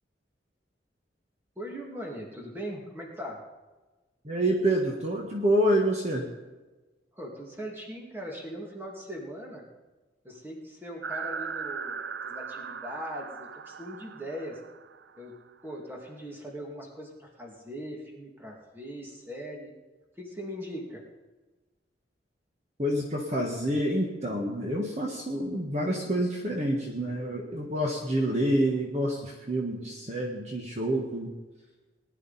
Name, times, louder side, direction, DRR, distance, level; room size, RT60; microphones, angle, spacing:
voice 1, 1.6-3.4 7.2-9.6 10.2-14.6 15.2-15.4 15.6-19.7 20.2-21.0, equal, 10° right, -1 dB, 2.3 m, -40 dB
voice 2, 4.2-6.2 22.8-31.3, right 1 dB, 35° right, 0 dB, 1.5 m, -27 dB
sound 1, 11.0-15.4, right 6 dB, 65° right, 0.5 m, -38 dB
19.0 x 11.0 x 4.2 m, 1.2 s
head